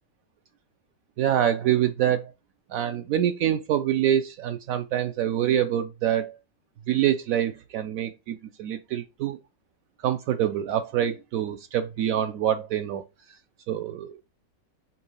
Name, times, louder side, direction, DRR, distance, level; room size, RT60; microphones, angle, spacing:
voice 1, 1.2-2.3 2.7-6.3 6.9-9.4 10.0-13.0 13.7-14.2, right 10 dB, 75° right, 0.8 m, -25 dB
5.4 x 3.6 x 5.4 m
omnidirectional pair, 2.0 m